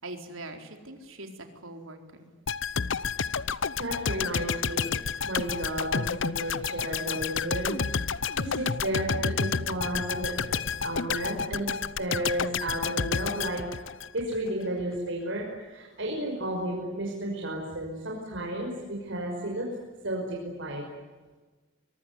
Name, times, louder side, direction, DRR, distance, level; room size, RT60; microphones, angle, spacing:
voice 1, 0.0-1.3 1.5-2.3, right 2 dB, 85° right, 5 dB, 4.3 m, -42 dB
sound 1, 2.5-14.5 14.8-14.9, left 6 dB, 65° left, 0.8 m, -30 dB
voice 2, 3.8-4.9 5.2-7.7 8.3-11.7 12.0-13.9 14.1-19.7 20.0-20.9, right 1 dB, 65° right, -1 dB, 5.7 m, -33 dB
24.0 x 23.5 x 9.7 m, 1.3 s
head